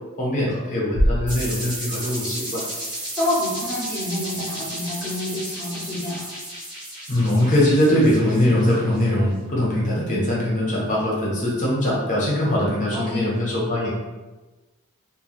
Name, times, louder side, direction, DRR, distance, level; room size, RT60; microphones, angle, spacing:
voice 1, 0.2-2.6 7.1-13.9, left 1 dB, 35° left, -5 dB, 0.7 m, -21 dB
sound 1, 1.0-3.0, equal, 60° left, 0.4 m, -26 dB
sound 2, 1.3-9.1, right 1 dB, 20° right, 0.9 m, -33 dB
voice 2, 3.2-6.3 12.9-13.3, left 1 dB, 5° left, -10 dB, 0.6 m, -28 dB
2.3 x 2.2 x 3.2 m, 1.1 s
head